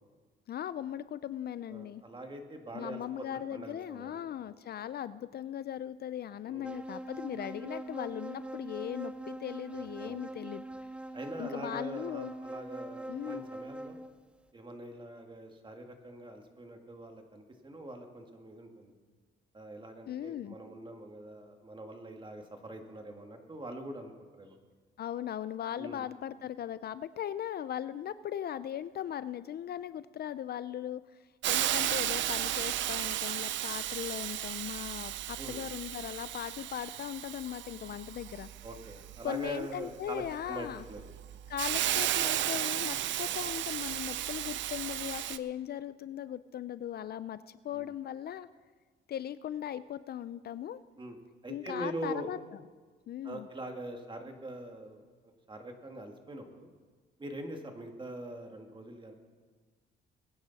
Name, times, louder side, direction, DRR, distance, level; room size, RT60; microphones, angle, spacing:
voice 1, 0.5-2.0 2.7-10.6 11.4-12.3 13.1-13.5 20.1-20.6 25.0-31.0 31.5-38.5 39.2-40.9 41.5-48.5 49.1-50.8 51.5-52.4 53.1-53.5, left 10 dB, 55° left, 15 dB, 0.4 m, -38 dB
voice 2, 1.7-4.3 6.5-6.8 9.8-10.3 11.1-14.0 14.5-18.9 19.5-24.6 25.8-26.1 35.4-35.6 38.6-41.1 47.7-47.9 51.0-51.2 51.4-52.3 53.2-55.0 55.5-56.7 57.2-59.1, right 1 dB, 25° right, 4 dB, 1.9 m, -43 dB
sound 1, 6.6-14.1, right 1 dB, 5° right, 0.5 m, -42 dB
Hiss, 31.4-45.4, right 12 dB, 70° right, 0.6 m, -34 dB
21.0 x 10.0 x 4.1 m, 1.4 s
cardioid pair, 90°, 20 cm